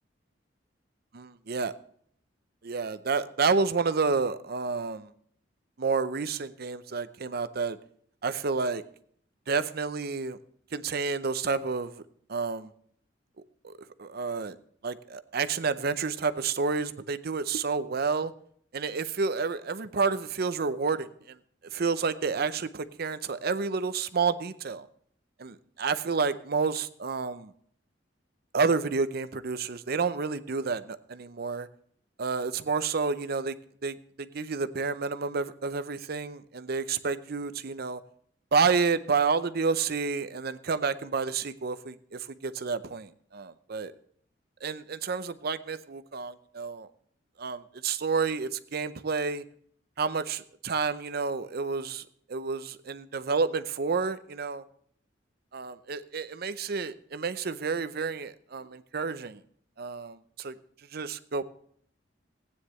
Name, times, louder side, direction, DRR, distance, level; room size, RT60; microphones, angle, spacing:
voice 1, 1.1-1.7 2.6-5.1 5.8-7.8 8.2-8.8 9.5-10.4 10.7-12.0 12.3-12.7 13.6-14.6 14.8-18.3 18.7-21.4 21.7-24.9 25.4-27.5 28.5-31.7 32.2-33.6 33.8-38.0 38.5-43.9 44.6-46.9 47.4-49.4 50.0-54.6 55.5-59.4 59.8-60.6 60.9-61.4, right 4 dB, 55° right, 13 dB, 0.6 m, -30 dB
16.0 x 9.7 x 3.2 m, 0.62 s
head